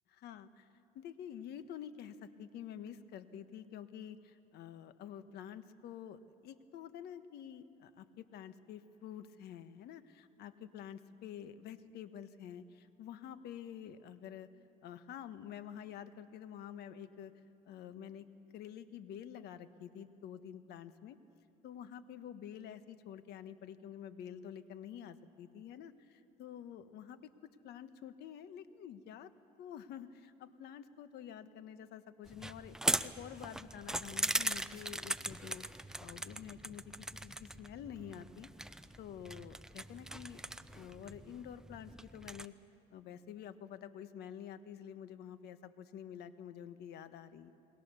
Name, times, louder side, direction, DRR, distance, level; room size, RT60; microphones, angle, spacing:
voice 1, 0.1-0.7 0.9-14.5 14.8-17.3 17.6-21.2 21.6-29.3 29.6-32.8 33.0-35.6 36.0-38.5 39.0-40.4 40.7-42.5 42.9-47.5, left 9 dB, 75° left, 11 dB, 1.3 m, -48 dB
sound 1, 32.3-42.5, right 1 dB, 5° right, 0.7 m, -40 dB
29.0 x 21.5 x 6.9 m, 2.6 s
cardioid pair, 110°, 17 cm